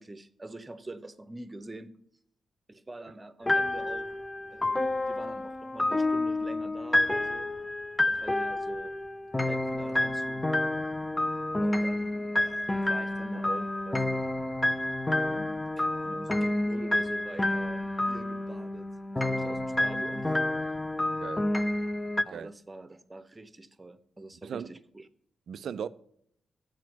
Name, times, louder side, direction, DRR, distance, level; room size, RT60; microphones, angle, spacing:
voice 1, 0.0-1.9 2.7-4.1 4.5-7.5 8.1-8.9 9.4-10.5 11.6-14.2 15.3-18.9 19.2-20.4 22.2-25.1, right 2 dB, 25° right, 0.9 m, -44 dB
sound 1, 3.5-22.2, left 1 dB, 20° left, 0.6 m, -29 dB
voice 2, 21.2-21.5 22.3-22.5 24.4-24.7 25.5-25.9, right 7 dB, 75° right, 0.4 m, -37 dB
7.5 x 5.1 x 5.9 m
supercardioid pair, 50°, 0 cm